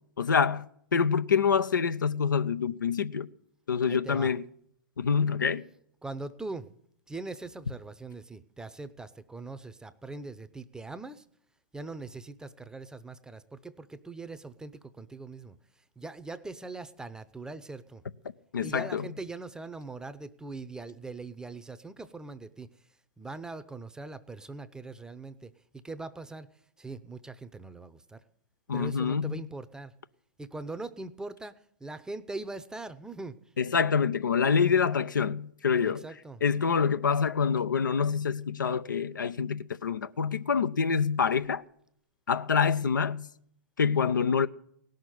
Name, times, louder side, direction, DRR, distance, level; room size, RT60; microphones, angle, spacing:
voice 1, 0.2-0.7 0.9-3.3 3.7-4.4 5.0-5.6 18.5-19.1 28.7-29.3 33.6-36.0 36.4-41.6 42.3-43.3 43.8-44.5, left 6 dB, 80° left, 0.6 m, -26 dB
voice 2, 3.9-4.3 6.0-6.7 7.1-11.2 11.7-15.6 16.0-18.0 18.6-22.7 23.2-25.5 25.8-26.5 26.8-28.2 28.7-29.9 30.4-33.3 34.5-34.7 35.8-36.4, right 3 dB, 5° right, 0.7 m, -41 dB
18.0 x 6.5 x 9.3 m
figure-of-eight pair, 105°, 10 cm